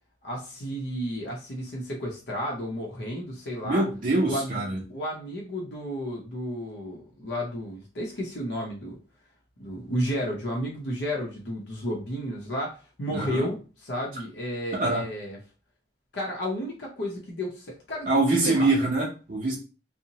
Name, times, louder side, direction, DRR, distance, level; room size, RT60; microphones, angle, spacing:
voice 1, 0.2-3.9 4.2-4.6 4.9-9.0 9.6-15.4 16.1-18.7, equal, 75° left, -2 dB, 0.7 m, -32 dB
voice 2, 3.6-4.8 13.1-13.5 14.7-15.1 18.1-19.6, right 2 dB, 45° right, -3 dB, 0.6 m, -24 dB
2.7 x 2.0 x 2.8 m, 0.34 s
head